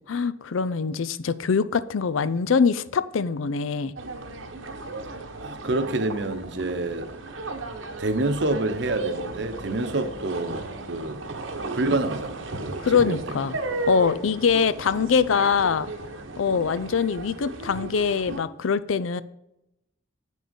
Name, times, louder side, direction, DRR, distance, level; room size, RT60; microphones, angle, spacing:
voice 1, 0.1-3.9 12.8-13.5 13.9-15.9 16.4-19.2, left 5 dB, 85° left, 0.5 m, -23 dB
sound 1, 4.0-18.4, right 2 dB, 80° right, 1.1 m, -35 dB
voice 2, 5.4-7.1 8.0-11.2 11.7-13.2, right 2 dB, 60° right, 0.9 m, -27 dB
8.5 x 6.3 x 5.3 m
head